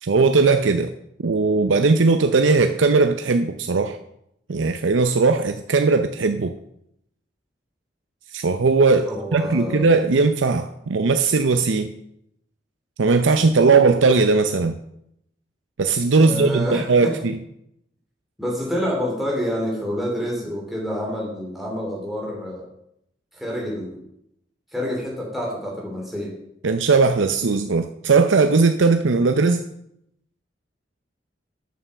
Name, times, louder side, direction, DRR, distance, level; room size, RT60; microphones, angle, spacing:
voice 1, 0.0-0.9 1.2-4.0 4.5-6.5 8.3-11.9 13.0-14.7 15.8-17.4 26.6-29.6, right 4 dB, 85° right, 7 dB, 0.6 m, -18 dB
voice 2, 9.1-9.9 16.2-17.1 18.4-22.6 23.3-24.0 24.7-26.3, equal, ahead, -4 dB, 2.7 m, -28 dB
9.2 x 6.8 x 6.8 m, 0.77 s
head